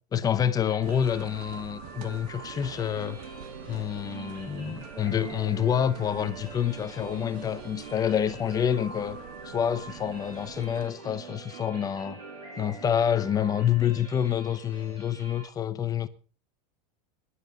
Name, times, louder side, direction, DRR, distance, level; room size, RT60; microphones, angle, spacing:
voice 1, 0.1-3.2 3.7-9.2 9.4-12.2 12.6-16.1, left 9 dB, 20° left, 0.8 m, -27 dB
sound 1, 0.7-15.4, right 1 dB, 25° right, 6.6 m, -47 dB
sound 2, 0.8-10.9, right 8 dB, 60° right, 1.8 m, -46 dB
sound 3, 2.8-13.4, right 7 dB, 90° right, 2.3 m, -45 dB
21.0 x 11.5 x 3.9 m
supercardioid pair, 160°, 20 cm